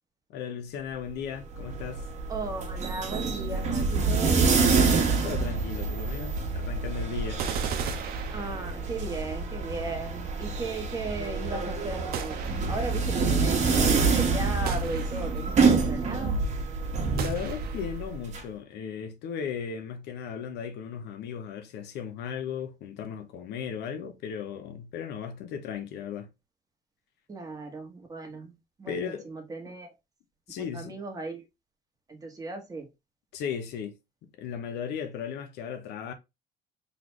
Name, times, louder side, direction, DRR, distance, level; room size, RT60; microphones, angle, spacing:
voice 1, 0.3-2.1 5.2-7.5 17.1-26.3 28.9-29.3 30.5-31.0 33.3-33.9 34.2-36.1, left 7 dB, 80° left, 0.9 m, -36 dB
sound 1, 1.3-18.4, right 4 dB, 45° right, 1.4 m, -27 dB
voice 2, 2.3-4.7 8.3-12.4 12.7-16.3 27.3-28.5 28.8-29.9 30.6-31.4 32.1-32.9, right 3 dB, 20° right, 1.3 m, -36 dB
sound 2, 7.4-9.0 12.1-13.0 14.7-15.6 17.2-18.0, right 7 dB, 65° right, 0.8 m, -36 dB
4.1 x 3.4 x 3.0 m
cardioid pair, 110°, 17 cm